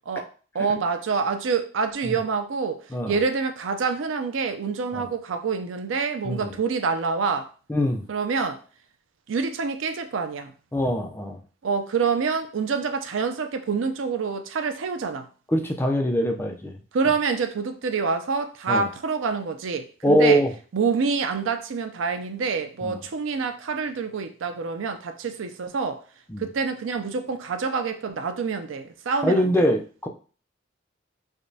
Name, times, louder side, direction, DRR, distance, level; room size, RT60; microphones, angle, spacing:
voice 1, 0.5-7.5 8.1-8.6 9.3-10.5 11.6-15.3 16.9-20.4 20.7-26.0 26.4-29.6, right 5 dB, 85° right, 0.4 m, -27 dB
voice 2, 7.7-8.0 10.7-11.4 15.5-16.8 18.7-18.9 20.0-20.5 22.8-23.0 26.3-26.5 29.2-30.1, equal, 10° left, 0.3 m, -23 dB
4.8 x 2.2 x 2.6 m
head